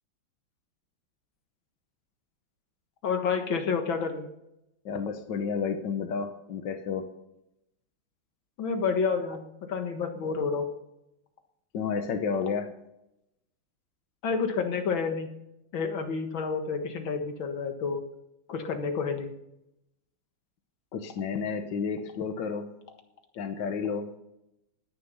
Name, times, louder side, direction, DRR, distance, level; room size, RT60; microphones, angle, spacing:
voice 1, 3.0-4.3 8.6-10.7 14.2-15.3 15.7-18.0 18.5-19.3, left 5 dB, 85° left, 5 dB, 2.4 m, -29 dB
voice 2, 4.9-7.1 11.7-12.7 20.9-22.7 23.4-24.1, left 6 dB, 70° left, 7 dB, 1.9 m, -31 dB
18.0 x 10.5 x 5.6 m, 0.85 s
omnidirectional pair, 2.1 m